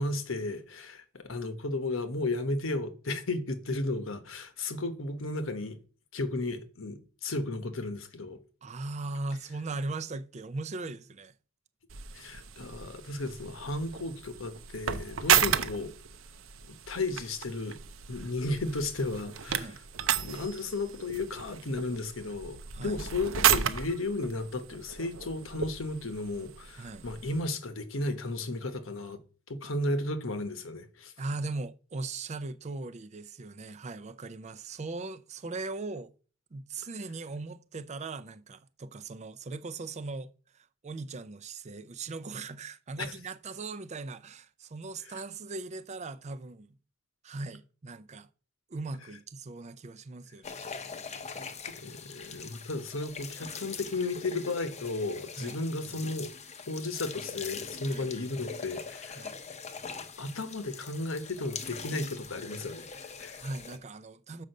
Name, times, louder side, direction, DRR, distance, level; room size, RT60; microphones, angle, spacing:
voice 1, 0.0-5.8 6.1-8.4 12.1-15.9 16.7-17.8 18.1-19.8 20.2-29.2 29.5-31.1 43.0-43.2 45.1-45.2 51.7-56.3 56.7-59.3 60.2-63.4, left 2 dB, 75° left, 1.1 m, -34 dB
voice 2, 8.6-11.3 19.5-19.8 22.7-23.0 26.8-27.1 31.2-36.1 36.5-46.8 47.2-48.3 48.7-50.7 55.4-55.6 57.8-58.1 59.2-59.4 63.4-64.4, right 3 dB, 35° right, 0.5 m, -39 dB
sound 1, 11.9-27.4, right 8 dB, 75° right, 0.7 m, -33 dB
sound 2, 50.4-63.8, left 5 dB, 35° left, 0.7 m, -42 dB
6.3 x 5.2 x 6.5 m
head